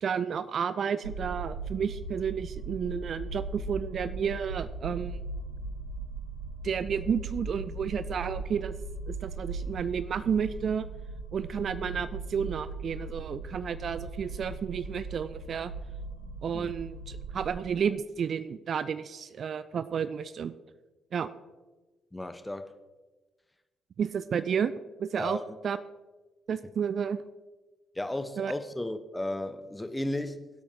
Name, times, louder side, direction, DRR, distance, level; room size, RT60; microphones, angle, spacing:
voice 1, 0.0-5.2 6.6-8.7 9.1-10.9 11.3-15.7 16.4-20.5 21.1-21.3 24.0-24.7 25.0-25.8 26.5-27.2 28.4-28.5, right 7 dB, 50° right, 14 dB, 0.4 m, -31 dB
sound 1, 1.0-17.5, right 3 dB, 85° right, 1.1 m, -39 dB
voice 2, 22.1-22.7 25.2-25.6 28.0-30.5, left 1 dB, 10° left, 9 dB, 0.9 m, -34 dB
21.5 x 8.4 x 2.8 m, 1.2 s
figure-of-eight pair, 40°, 0 cm